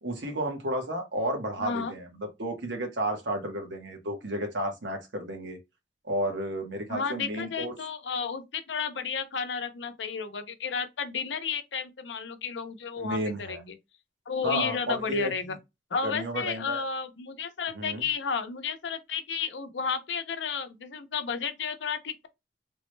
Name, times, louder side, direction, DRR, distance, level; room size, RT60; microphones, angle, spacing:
voice 1, 0.0-5.6 6.0-7.7 13.0-13.6 14.4-15.3 16.0-16.8 17.7-18.0, right 1 dB, 85° right, 1.0 m, -32 dB
voice 2, 1.6-1.9 6.9-13.7 14.3-15.6 15.9-22.3, left 6 dB, 85° left, 0.6 m, -32 dB
3.5 x 2.1 x 3.1 m
head